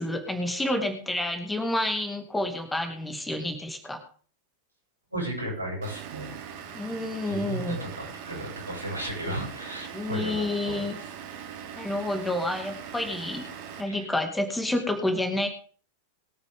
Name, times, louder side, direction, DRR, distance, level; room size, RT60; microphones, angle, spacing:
voice 1, 0.0-4.0 6.7-7.8 9.9-11.0 11.8-13.5 13.8-15.5, left 1 dB, 5° left, 5 dB, 2.4 m, -29 dB
voice 2, 5.1-6.3 7.3-11.0 13.9-14.0, right 1 dB, 90° right, -3 dB, 7.6 m, -34 dB
Vehicle / Engine, 5.8-13.8, right 8 dB, 50° right, 3.1 m, -41 dB
22.0 x 9.1 x 3.8 m, 0.43 s
figure-of-eight pair, 90°, 0 cm